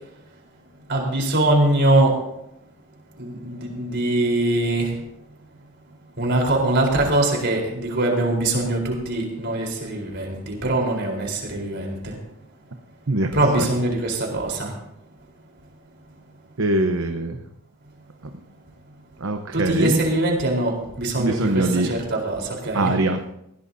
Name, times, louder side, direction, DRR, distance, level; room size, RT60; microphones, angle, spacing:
voice 1, 0.9-2.2 3.2-5.0 6.2-12.2 13.3-14.7 19.5-22.9, right 1 dB, 55° right, 1 dB, 4.0 m, -22 dB
voice 2, 16.6-17.4 19.2-20.0 21.2-21.9 22.7-23.2, right 2 dB, 70° right, 6 dB, 0.9 m, -22 dB
19.5 x 16.5 x 2.7 m, 0.82 s
head